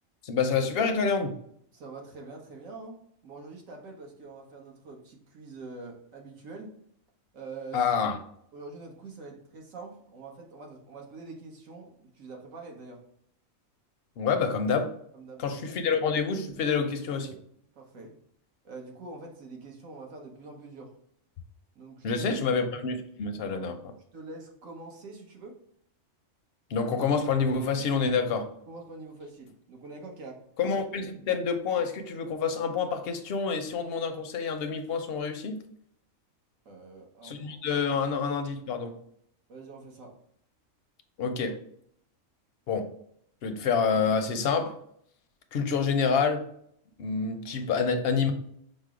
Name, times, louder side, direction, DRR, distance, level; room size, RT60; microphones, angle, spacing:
voice 1, 0.2-1.4 7.7-8.2 14.2-14.9 15.4-17.4 22.0-23.8 26.7-28.5 30.6-35.6 37.2-38.9 41.2-41.6 42.7-42.9 43.4-44.8 45.5-46.5 47.0-48.3, left 5 dB, 60° left, 6 dB, 0.6 m, -27 dB
voice 2, 1.7-3.0 3.2-6.8 7.3-7.9 8.5-13.0 15.1-15.8 17.2-17.5 17.7-18.1 18.6-20.9 21.7-22.4 23.5-23.7 24.1-25.6 28.7-30.4 36.6-37.6 37.9-38.0 39.5-40.1, right 3 dB, 75° right, 0 dB, 1.4 m, -45 dB
5.2 x 2.0 x 4.7 m, 0.68 s
omnidirectional pair, 1.4 m